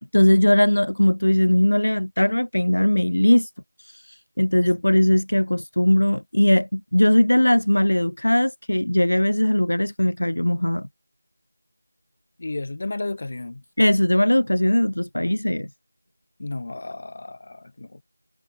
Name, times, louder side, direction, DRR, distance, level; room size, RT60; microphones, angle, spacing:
voice 1, 0.1-3.5 3.8-10.9 13.8-15.7, left 1 dB, 75° left, 0.4 m, -19 dB
voice 2, 12.4-13.6 16.4-18.0, left 2 dB, 40° left, 0.9 m, -32 dB
figure-of-eight pair, 170°, 0 cm